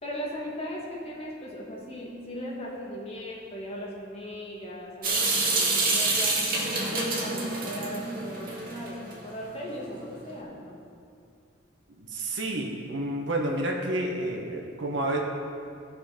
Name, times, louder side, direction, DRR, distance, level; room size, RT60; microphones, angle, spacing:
voice 1, 0.0-6.4 6.9-10.8, equal, 35° left, -4 dB, 2.1 m, -38 dB
Water tap faucet / Sink (filling or washing) / Drip, 5.0-9.1, right 3 dB, 50° right, 2.0 m, -27 dB
voice 2, 12.0-15.2, right 1 dB, 70° right, 0 dB, 1.5 m, -30 dB
16.5 x 5.7 x 5.3 m, 2.4 s
head